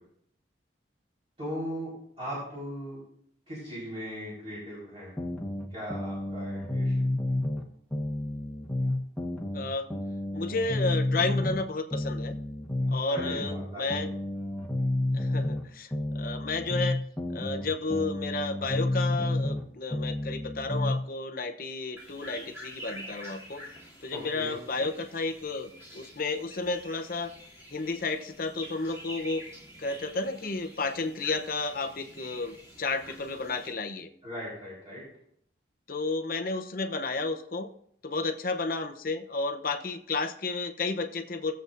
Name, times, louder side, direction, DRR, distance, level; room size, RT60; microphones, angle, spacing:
voice 1, 1.4-1.9 2.2-3.0 3.5-5.1 5.7-7.1 13.1-14.0 24.1-24.8 34.2-35.0, equal, 30° right, -8 dB, 4.4 m, -38 dB
sound 1, 5.2-7.6 7.9-11.6 11.9-15.6 15.9-19.6 19.9-21.0, left 1 dB, 5° left, 1.3 m, -30 dB
voice 2, 9.5-9.9 10.3-12.4 12.9-14.1 15.1-17.0 17.3-23.6 24.0-27.3 27.7-29.4 29.8-34.1 35.9-37.7 38.0-41.5, left 3 dB, 50° left, 6 dB, 0.8 m, -32 dB
sound 2, 22.0-33.7, equal, 15° right, 2.8 m, -47 dB
17.5 x 7.8 x 2.6 m, 0.68 s
head